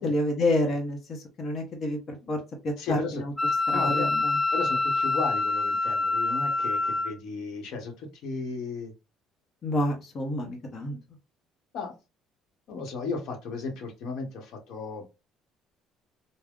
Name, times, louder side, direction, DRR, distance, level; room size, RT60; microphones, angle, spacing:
voice 1, 0.0-3.3 3.7-4.3 9.6-11.0, left 1 dB, 40° left, 1 dB, 0.8 m, -29 dB
voice 2, 2.8-3.2 3.7-4.1 4.5-8.9 11.7-11.9 12.7-15.0, left 4 dB, 65° left, 3 dB, 0.9 m, -35 dB
Wind instrument woodwind instrument, 3.4-7.1, left 3 dB, ahead, 0.4 m, -26 dB
3.5 x 2.0 x 2.3 m, 0.27 s
cardioid pair, 125°, 0 cm